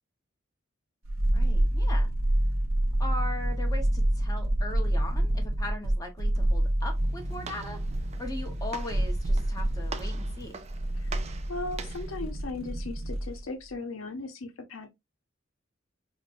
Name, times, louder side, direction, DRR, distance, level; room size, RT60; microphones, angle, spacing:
sound 1, 1.0-13.4 13.7-13.8, right 1 dB, 90° right, 0.7 m, -28 dB
voice 1, 1.3-2.1 3.0-7.8 8.2-10.6, left 1 dB, 20° left, 0.9 m, -39 dB
Walk footsteps, 6.8-12.2, right 3 dB, 35° right, 0.4 m, -41 dB
voice 2, 11.5-14.9, left 3 dB, 85° left, 0.7 m, -37 dB
5.1 x 2.1 x 2.5 m
head